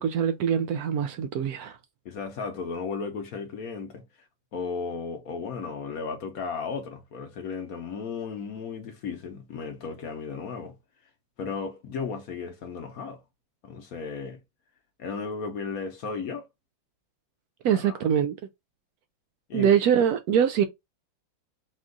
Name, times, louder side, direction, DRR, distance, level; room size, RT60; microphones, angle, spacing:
voice 1, 0.0-1.7 17.6-18.3 19.5-20.6, right 8 dB, 85° right, 0.8 m, -23 dB
voice 2, 2.0-4.0 4.5-10.8 11.4-13.2 13.6-14.4 15.0-16.5 17.7-18.0 19.5-19.8, left 5 dB, 60° left, 1.0 m, -35 dB
4.3 x 2.4 x 3.7 m
omnidirectional pair, 2.1 m